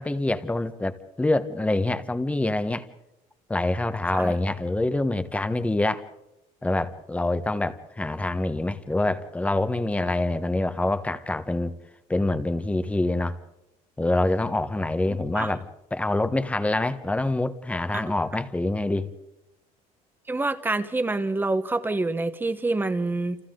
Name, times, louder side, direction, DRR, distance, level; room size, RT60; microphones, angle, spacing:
voice 1, 0.0-2.9 3.5-6.0 6.6-11.7 12.1-13.4 14.0-15.7 15.9-19.1, left 2 dB, 10° left, 10 dB, 1.2 m, -26 dB
voice 2, 20.3-23.4, right 2 dB, 10° right, 10 dB, 1.2 m, -26 dB
29.5 x 28.0 x 3.9 m, 0.91 s
cardioid pair, 140°, 16 cm